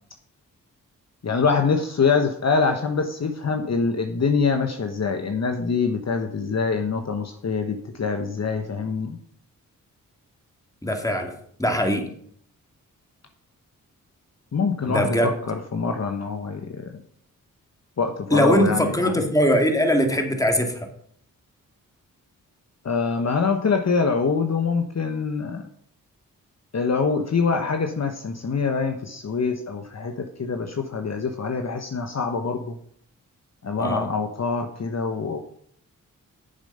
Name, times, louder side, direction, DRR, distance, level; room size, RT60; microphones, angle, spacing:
voice 1, 1.2-9.2 14.5-16.9 18.0-19.1 22.8-25.6 26.7-32.8 33.6-35.4, left 5 dB, 50° left, 5 dB, 1.1 m, -24 dB
voice 2, 10.8-11.3 11.6-12.1 14.9-15.3 18.3-20.8 33.8-34.1, equal, 10° left, 3 dB, 2.2 m, -21 dB
9.1 x 7.1 x 5.5 m, 0.65 s
cardioid pair, 50°, 35 cm